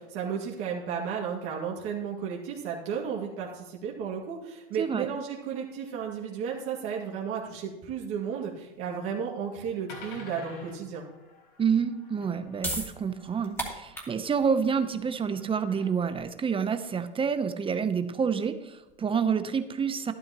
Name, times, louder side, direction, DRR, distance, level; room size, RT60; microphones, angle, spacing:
voice 1, 0.0-11.1, right 7 dB, 50° right, -3 dB, 2.3 m, -33 dB
sound 1, 7.2-7.3 8.8-9.0 9.5-9.6 9.9-14.3 15.0-16.1, left 3 dB, 65° left, 4.4 m, -50 dB
voice 2, 11.6-20.1, right 6 dB, 20° right, 10 dB, 0.8 m, -28 dB
sound 2, 12.4-18.9, equal, 10° left, 3.0 m, -40 dB
12.0 x 11.5 x 3.0 m, 1.0 s
hypercardioid pair, 105°, 29 cm